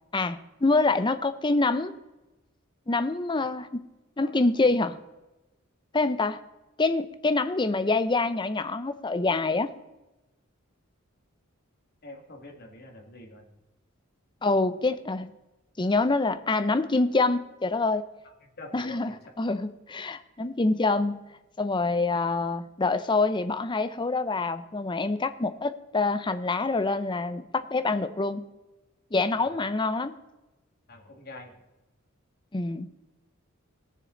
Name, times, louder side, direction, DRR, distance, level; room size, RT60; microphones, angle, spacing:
voice 1, 0.1-2.0 2.9-3.9 4.2-5.0 5.9-6.4 6.8-9.7 14.4-15.3 15.8-18.0 18.7-21.2 21.6-28.4 29.1-30.1 32.5-32.9, left 3 dB, 20° left, 12 dB, 0.6 m, -26 dB
voice 2, 12.0-13.5 18.6-19.0 29.4-29.5 30.9-31.5, left 2 dB, 50° left, 1 dB, 2.0 m, -45 dB
19.0 x 6.7 x 3.9 m, 1.0 s
head